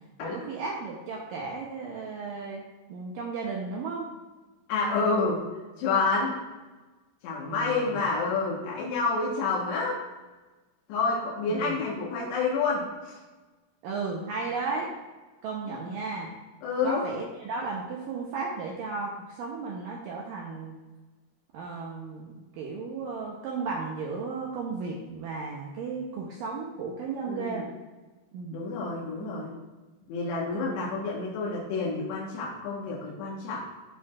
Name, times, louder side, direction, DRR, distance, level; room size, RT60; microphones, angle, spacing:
voice 1, 0.2-2.6 2.9-4.1 7.5-8.0 11.5-11.8 13.8-14.9 15.4-16.3 16.8-20.8 21.5-22.3 22.6-27.7 28.3-28.6 29.2-29.3 30.5-30.9, right 4 dB, 85° right, -2 dB, 1.9 m, -34 dB
voice 2, 4.7-5.4 5.8-6.4 7.2-10.0 10.9-13.2 15.7-15.8 16.6-17.0 27.3-27.6 28.5-29.5 30.1-33.6, left 4 dB, 80° left, -5 dB, 3.3 m, -29 dB
13.5 x 4.6 x 2.4 m, 1.2 s
omnidirectional pair, 5.0 m